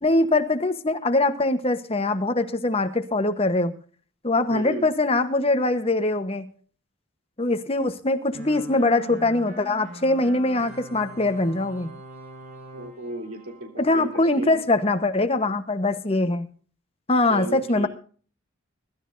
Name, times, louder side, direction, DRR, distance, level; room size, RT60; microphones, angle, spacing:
voice 1, 0.0-3.7 4.2-6.5 7.4-11.9 13.8-16.5 17.1-17.9, left 2 dB, 25° left, 9 dB, 1.0 m, -22 dB
voice 2, 4.5-4.8 12.7-14.6 17.3-17.9, right 1 dB, 85° right, 3 dB, 3.4 m, -34 dB
sound 1, 8.3-14.5, right 1 dB, 40° right, 4.5 m, -43 dB
22.5 x 12.5 x 2.6 m, 0.43 s
head